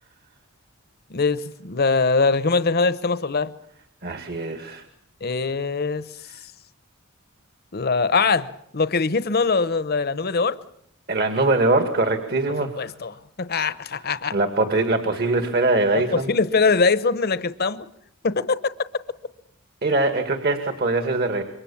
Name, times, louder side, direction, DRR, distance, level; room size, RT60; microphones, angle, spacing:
voice 1, 1.1-3.5 5.2-6.0 7.7-10.6 12.8-14.3 16.1-17.9 18.2-18.6, left 4 dB, 50° left, 14 dB, 0.9 m, -22 dB
voice 2, 4.0-4.9 11.1-12.9 14.3-16.3 19.8-21.4, right 2 dB, 50° right, 7 dB, 2.2 m, -22 dB
27.5 x 23.5 x 7.2 m, 0.71 s
head